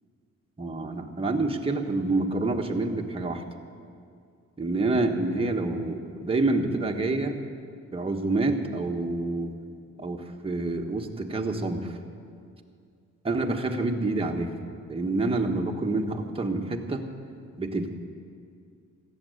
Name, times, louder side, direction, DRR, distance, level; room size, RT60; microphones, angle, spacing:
voice 1, 0.6-3.4 4.6-7.4 7.9-9.5 10.0-12.0 13.2-14.6 14.9-17.0 17.6-17.9, right 2 dB, 20° right, 2 dB, 1.4 m, -27 dB
14.0 x 8.1 x 9.4 m, 2.4 s
cardioid pair, 90°, 30 cm